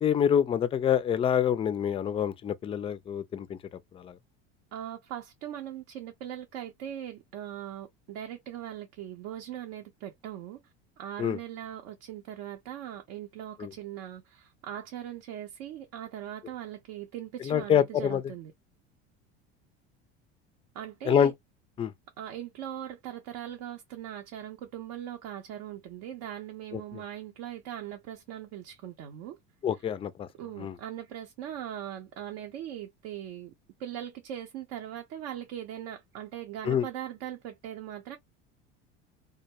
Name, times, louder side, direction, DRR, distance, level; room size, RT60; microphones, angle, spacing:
voice 1, 0.0-3.6 4.0-4.1 11.2-11.4 13.6-13.7 17.5-18.2 21.1-21.3 21.8-21.9 26.7-26.8 29.6-30.3 30.6-30.7 36.7-36.8, left 9 dB, 20° left, 0.3 m, -26 dB
voice 2, 4.7-18.5 20.7-21.3 22.2-29.4 29.7-29.8 30.4-33.5 33.8-38.2, right 11 dB, 65° right, 0.6 m, -40 dB
2.3 x 2.1 x 2.7 m
hypercardioid pair, 90°, 31 cm